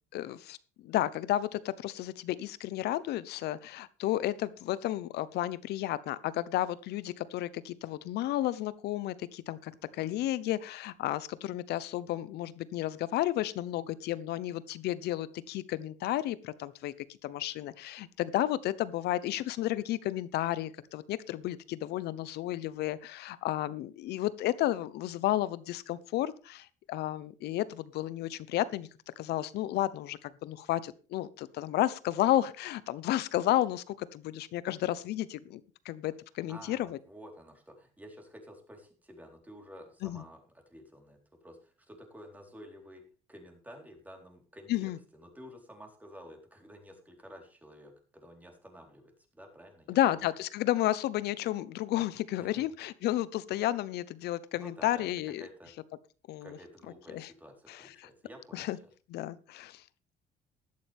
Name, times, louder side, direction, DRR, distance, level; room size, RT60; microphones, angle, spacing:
voice 1, 0.1-28.9 29.2-37.0 40.0-40.2 44.7-45.0 49.9-55.4 56.3-56.6 57.1-57.3 57.7-58.1 58.5-58.8 59.1-59.8, left 14 dB, 75° left, 17 dB, 0.9 m, -32 dB
voice 2, 36.5-43.0 43.3-50.2 52.4-52.6 54.5-55.1 55.4-55.7 56.4-58.7, equal, 10° right, 2 dB, 4.0 m, -51 dB
15.5 x 11.5 x 3.5 m, 0.35 s
cardioid pair, 110°, 17 cm